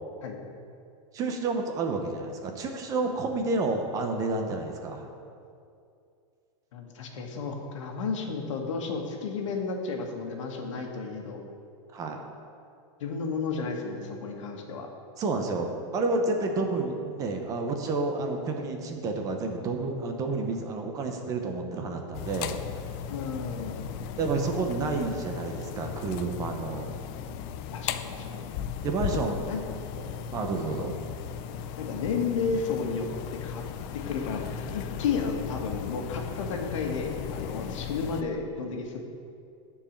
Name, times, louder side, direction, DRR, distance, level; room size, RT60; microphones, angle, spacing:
voice 1, 1.1-5.1 11.9-12.2 15.2-22.6 24.2-26.9 28.8-29.4 30.0-30.9 37.6-37.8, right 3 dB, 20° right, 3 dB, 0.8 m, -30 dB
voice 2, 6.7-11.4 13.0-14.9 23.1-23.9 27.7-28.4 29.5-29.6 31.8-33.6 33.9-39.0, left 5 dB, 80° left, 2 dB, 1.6 m, -32 dB
sound 1, 22.1-38.2, left 8 dB, 30° left, 0.4 m, -36 dB
10.0 x 4.8 x 7.2 m, 2.5 s
supercardioid pair, 165°, 16 cm